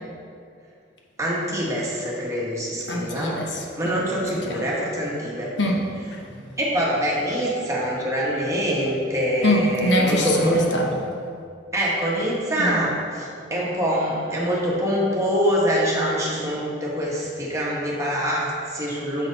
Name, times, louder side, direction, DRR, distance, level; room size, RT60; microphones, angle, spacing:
voice 1, 1.2-3.4 3.8-5.5 6.6-10.7 11.7-19.3, equal, 15° right, -5 dB, 1.2 m, -24 dB
voice 2, 2.9-4.7 5.6-6.6 9.4-11.1 12.6-12.8, left 1 dB, 75° left, 0 dB, 0.8 m, -25 dB
6.4 x 6.0 x 3.9 m, 2.3 s
head